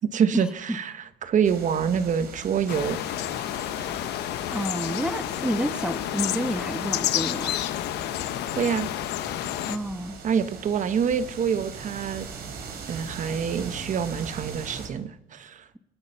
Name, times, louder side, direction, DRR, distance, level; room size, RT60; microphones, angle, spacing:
voice 1, 0.1-3.0 3.7-3.9 8.6-8.9 10.2-12.3 12.9-15.6, right 7 dB, 50° right, 12 dB, 1.1 m, -26 dB
sound 1, 1.4-14.9, right 5 dB, 65° right, 3.7 m, -41 dB
sound 2, 2.7-9.8, left 13 dB, 80° left, 1.0 m, -30 dB
voice 2, 4.5-7.6 9.7-10.1, right 1 dB, 5° right, 9 dB, 1.1 m, -29 dB
26.0 x 8.8 x 5.6 m, 0.88 s
cardioid pair, 110°, 17 cm